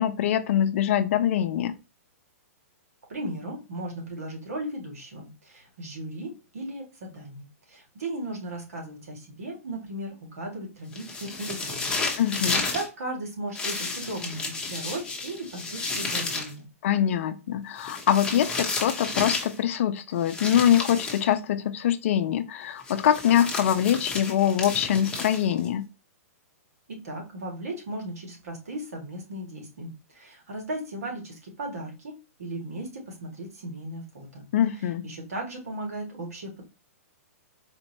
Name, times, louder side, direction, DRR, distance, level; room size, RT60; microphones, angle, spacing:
voice 1, 0.0-1.8 12.2-12.6 16.8-25.8 34.5-35.0, left 10 dB, 60° left, 0.5 m, -24 dB
voice 2, 3.1-12.0 12.7-16.7 26.9-34.5 35.0-36.6, right 1 dB, 80° right, 1.8 m, -36 dB
sound 1, 10.9-12.9 13.5-16.5 17.8-19.6 20.2-21.3 22.8-25.7, left 3 dB, 10° left, 1.0 m, -32 dB
4.3 x 2.6 x 3.0 m
hypercardioid pair, 125°, 8 cm